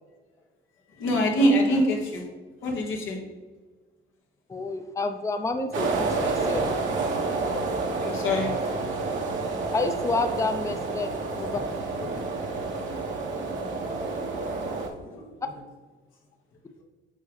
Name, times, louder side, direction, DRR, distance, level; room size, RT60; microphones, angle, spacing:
voice 1, 1.0-2.2 2.6-3.2 6.4-6.6 7.3-7.4 7.8-8.6 12.0-12.2 12.8-13.0 13.8-13.9 14.4-14.5 15.0-15.2, equal, 85° left, 0 dB, 1.5 m, -25 dB
voice 2, 4.5-6.7 9.7-11.6, left 3 dB, 15° left, 7 dB, 0.5 m, -29 dB
sound 1, 5.7-14.9, right 3 dB, 75° right, 1.1 m, -29 dB
8.9 x 3.7 x 3.1 m, 1.3 s
cardioid pair, 90°, 20 cm